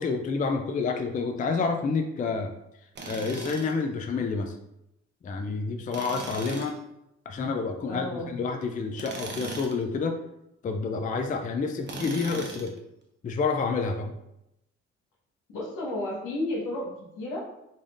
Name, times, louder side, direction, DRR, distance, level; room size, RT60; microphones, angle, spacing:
voice 1, 0.0-2.5 3.0-4.5 5.2-6.8 7.3-10.2 10.6-12.7 13.2-14.1, left 4 dB, 25° left, 4 dB, 0.4 m, -29 dB
Tools, 3.0-3.8 5.9-6.8 8.9-9.8 11.8-12.8, right 3 dB, 35° right, 0.7 m, -39 dB
voice 2, 7.9-8.3 15.5-16.9 17.2-17.4, left 1 dB, 90° left, -3 dB, 1.2 m, -32 dB
4.0 x 3.4 x 2.4 m, 0.84 s
cardioid pair, 90°, 30 cm